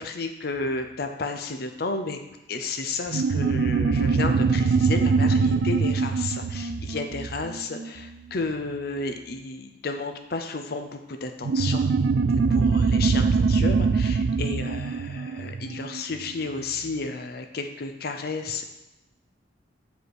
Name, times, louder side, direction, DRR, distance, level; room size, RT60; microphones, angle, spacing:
voice 1, 0.0-2.2 2.5-11.9 12.3-18.6, left 3 dB, 55° left, 6 dB, 0.6 m, -32 dB
sound 1, 3.1-8.1 11.4-16.3, right 4 dB, 70° right, 0.3 m, -23 dB
8.5 x 5.1 x 4.7 m, 1.0 s
head